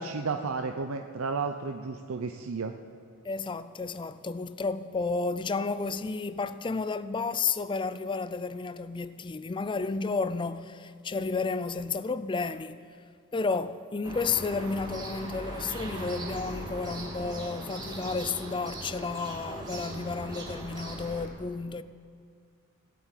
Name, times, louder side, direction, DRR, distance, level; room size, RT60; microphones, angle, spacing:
voice 1, 0.0-2.7, right 4 dB, 80° right, 0.6 m, -32 dB
voice 2, 3.2-13.0 13.3-21.8, left 4 dB, 25° left, 0.4 m, -32 dB
sound 1, 14.0-21.3, right 1 dB, 20° right, 2.7 m, -39 dB
16.5 x 8.5 x 9.1 m
head